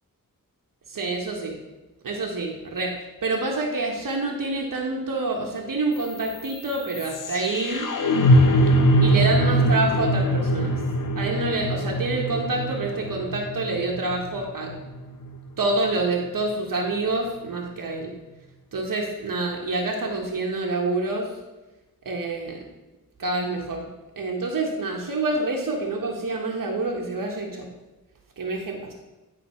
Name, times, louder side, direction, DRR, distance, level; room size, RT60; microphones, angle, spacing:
voice 1, 0.9-1.6 2.0-2.9 3.2-7.9 9.0-10.7 11.2-14.7 15.6-18.1 18.7-21.3 22.0-22.6 23.2-23.9 24.2-27.7 28.4-28.8, right 2 dB, 70° right, 0 dB, 1.3 m, -27 dB
sound 1, 5.9-16.0, equal, 65° left, 0.9 m, -23 dB
10.5 x 3.8 x 5.6 m, 1.1 s
wide cardioid pair, 100°, 34 cm